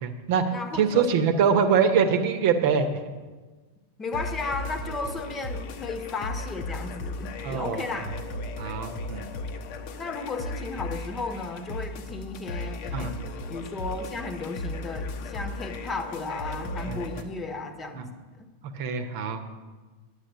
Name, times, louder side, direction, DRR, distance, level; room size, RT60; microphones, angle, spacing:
voice 1, 0.0-2.9 7.4-7.8 8.6-9.3 12.9-13.1 16.9-17.0 17.9-18.0 18.7-19.4, right 6 dB, 50° right, 7 dB, 1.1 m, -24 dB
voice 2, 0.5-1.3 4.0-8.2 10.0-13.1 13.5-18.1, left 3 dB, 20° left, 7 dB, 1.2 m, -34 dB
sound 1, 4.1-17.2, left 2 dB, 45° left, 1.0 m, -36 dB
10.0 x 8.0 x 6.8 m, 1.3 s
figure-of-eight pair, 90°, 0 cm